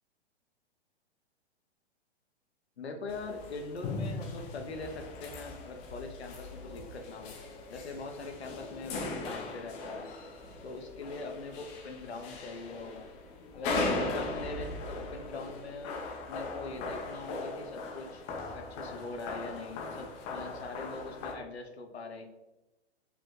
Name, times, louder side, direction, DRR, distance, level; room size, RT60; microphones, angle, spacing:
voice 1, 2.8-7.3 7.7-10.1 10.6-13.1 13.5-18.2 18.5-22.3, left 3 dB, 70° left, 5 dB, 0.8 m, -42 dB
sound 1, 3.1-21.3, left 2 dB, 20° left, 0.6 m, -39 dB
4.8 x 3.1 x 3.2 m, 1.0 s
figure-of-eight pair, 110°, 33 cm